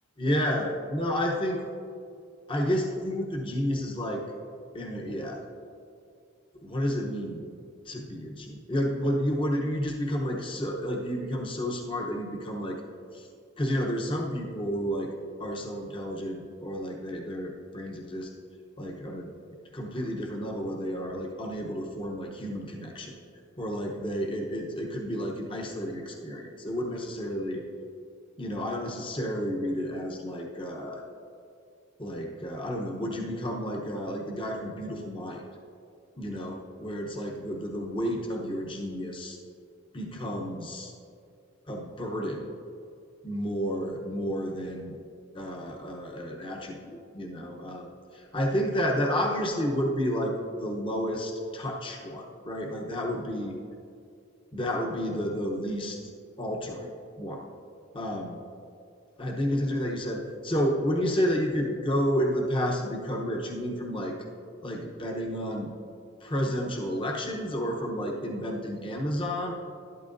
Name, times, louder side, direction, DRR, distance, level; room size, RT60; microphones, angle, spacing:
voice 1, 0.2-1.6 2.5-4.3 4.7-5.4 6.6-7.4 7.9-12.8 13.1-13.3 13.6-15.1 15.4-18.3 18.8-19.3 19.7-23.1 23.6-27.6 28.4-31.0 32.0-35.4 36.2-39.4 39.9-40.9 41.7-42.5 43.2-44.9 45.3-47.9 48.1-50.3 50.6-53.5 54.5-56.0 56.4-56.9 57.2-57.4 57.9-58.4 59.2-64.1 64.6-65.7 66.2-69.5, equal, 25° left, 1 dB, 0.9 m, -31 dB
12.5 x 11.5 x 2.6 m, 2.4 s
head